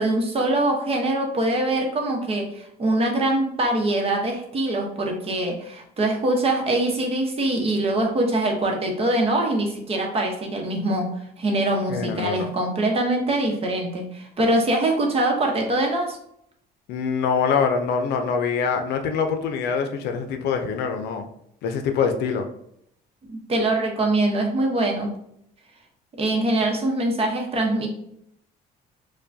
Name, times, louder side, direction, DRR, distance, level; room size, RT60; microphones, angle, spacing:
voice 1, 0.0-11.1 11.4-16.2 23.3-25.1 26.2-27.9, right 1 dB, 35° right, 2 dB, 0.9 m, -23 dB
voice 2, 11.9-12.5 16.9-21.3 21.6-22.5, left 6 dB, 75° left, 5 dB, 0.5 m, -24 dB
4.7 x 2.2 x 2.6 m, 0.73 s
cardioid pair, 110°, 17 cm